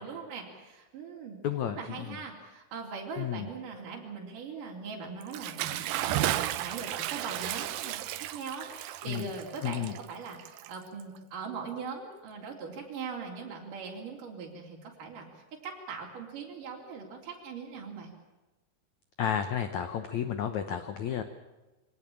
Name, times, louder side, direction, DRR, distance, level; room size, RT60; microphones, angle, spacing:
voice 1, 0.0-1.4 1.8-15.3 15.6-18.1, right 5 dB, 55° right, -1 dB, 5.0 m, -41 dB
voice 2, 1.4-2.2 3.2-3.5 9.0-9.3 9.6-9.9 19.2-21.2, left 9 dB, 75° left, 9 dB, 1.7 m, -32 dB
Bathtub (filling or washing) / Splash splatter, 5.2-11.2, right 13 dB, 75° right, 2.3 m, -34 dB
23.5 x 18.0 x 8.8 m, 1.1 s
omnidirectional pair, 4.7 m